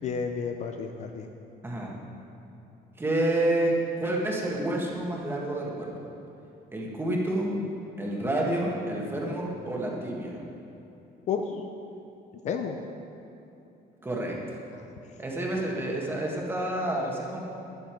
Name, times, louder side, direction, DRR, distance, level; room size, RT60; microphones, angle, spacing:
voice 1, 0.0-1.3 11.3-11.7 12.4-12.8 14.7-14.8 15.6-15.7, left 6 dB, 40° left, 5 dB, 0.6 m, -31 dB
voice 2, 1.6-1.9 3.0-6.1 6.7-7.5 8.0-10.4 14.0-14.4 15.2-17.4, right 1 dB, 15° right, -2 dB, 1.6 m, -29 dB
12.0 x 10.5 x 4.6 m, 2.9 s
cardioid pair, 170°, 18 cm